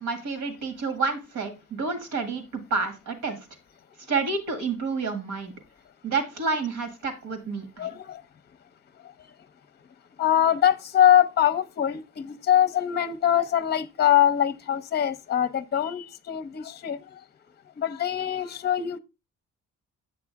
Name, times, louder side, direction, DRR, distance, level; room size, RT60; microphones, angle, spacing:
voice 1, 0.0-3.4 4.1-5.5 6.0-7.9, right 4 dB, 85° right, 2.0 m, -29 dB
voice 2, 7.8-8.2 10.2-17.0 17.8-19.0, left 10 dB, 35° left, 0.6 m, -23 dB
7.8 x 6.9 x 3.5 m
cardioid pair, 90°, 30 cm